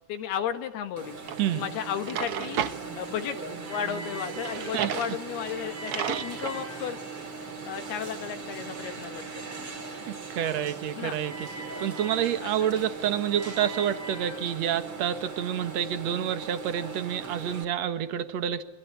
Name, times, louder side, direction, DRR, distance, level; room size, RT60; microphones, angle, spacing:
voice 1, 0.1-1.2 1.5-2.6 3.0-3.4 3.7-7.0 7.7-9.5 11.0-11.2 12.4-12.7, left 9 dB, 75° left, 8 dB, 3.5 m, -34 dB
Alarm, 1.0-17.6, right 4 dB, 35° right, 4.3 m, -39 dB
Drawer open or close, 1.3-1.4 1.9-2.8 4.3-5.1 5.5-5.6 5.9-6.6, right 8 dB, 85° right, 1.2 m, -32 dB
voice 2, 10.1-11.5 11.8-18.6, right 10 dB, 55° right, 10 dB, 2.2 m, -28 dB
26.5 x 25.5 x 8.5 m, 0.94 s
omnidirectional pair, 4.7 m